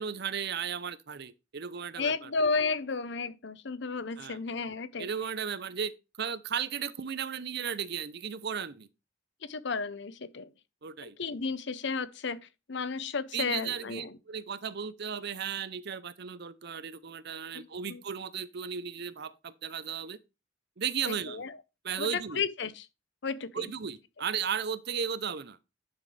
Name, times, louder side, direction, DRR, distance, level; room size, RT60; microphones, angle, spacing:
voice 1, 0.0-2.3 4.2-4.4 5.0-5.9 6.2-8.9 10.8-11.2 13.3-20.2 20.8-21.4 21.8-22.4 23.5-25.6, right 7 dB, 60° right, 0.7 m, -35 dB
voice 2, 2.0-5.1 9.4-10.5 11.0-14.1 17.5-18.0 21.1-21.5 22.0-22.9 23.2-23.7, left 4 dB, 65° left, 0.8 m, -33 dB
10.5 x 6.2 x 3.3 m
head